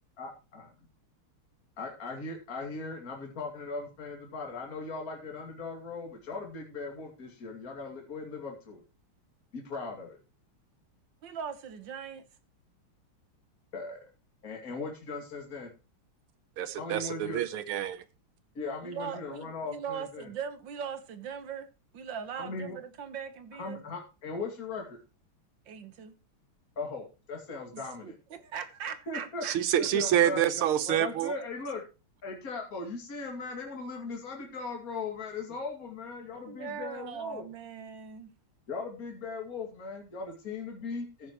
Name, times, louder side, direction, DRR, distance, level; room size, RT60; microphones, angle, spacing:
voice 1, 0.2-0.7 1.8-8.8 9.5-10.2 13.7-14.0 14.4-15.7 16.8-17.4 18.5-20.3 22.4-22.8 23.6-25.0 26.8-28.1 29.1-29.4 29.8-30.5 30.9-31.8 32.2-37.4 38.7-41.3, left 3 dB, 40° left, 2.8 m, -38 dB
voice 2, 11.2-12.3 18.8-21.7 21.9-23.8 25.7-26.2 27.7-29.6 36.5-38.3, right 7 dB, 65° right, 1.7 m, -40 dB
voice 3, 16.6-18.0 29.4-31.3, right 11 dB, 80° right, 1.8 m, -27 dB
14.5 x 9.3 x 3.0 m
omnidirectional pair, 2.3 m